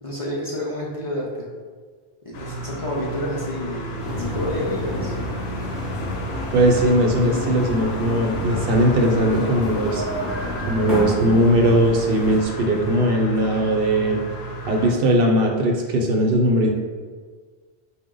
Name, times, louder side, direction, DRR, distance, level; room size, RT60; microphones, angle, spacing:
voice 1, 0.0-1.5 2.2-5.1, left 1 dB, 40° left, -5 dB, 0.6 m, -29 dB
sound 1, 2.3-14.9, right 1 dB, 75° left, 0.8 m, -33 dB
sound 2, 4.0-12.4, left 1 dB, ahead, 0.7 m, -30 dB
voice 2, 6.5-10.0 10.7-14.2 14.7-16.7, right 1 dB, 65° right, 1 dB, 0.7 m, -19 dB
4.9 x 2.1 x 3.7 m, 1.5 s
omnidirectional pair, 1.1 m